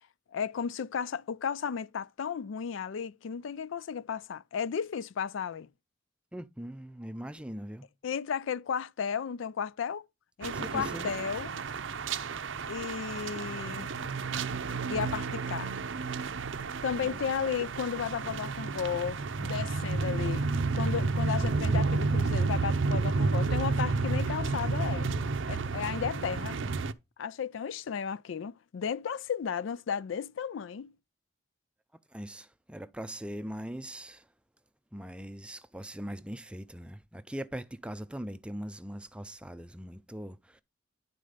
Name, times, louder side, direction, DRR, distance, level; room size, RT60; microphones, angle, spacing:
voice 1, 0.3-5.7 8.0-10.0 10.4-11.5 12.7-13.9 14.9-15.7 16.8-25.1 25.5-26.6 27.2-30.9, left 7 dB, 75° left, 0.4 m, -34 dB
voice 2, 6.3-7.9 10.5-11.1 32.1-34.3 34.9-40.6, equal, 5° right, 0.4 m, -41 dB
sound 1, 10.4-26.9, right 4 dB, 70° right, 0.6 m, -31 dB
11.0 x 4.2 x 5.0 m
head